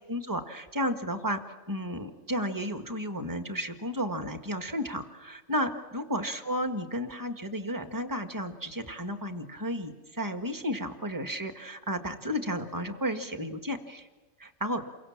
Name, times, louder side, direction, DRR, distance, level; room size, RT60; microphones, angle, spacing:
voice 1, 0.1-1.4 1.7-14.1 14.4-14.8, equal, 15° right, 6 dB, 1.6 m, -33 dB
29.0 x 23.5 x 7.3 m, 1.2 s
omnidirectional pair, 1.6 m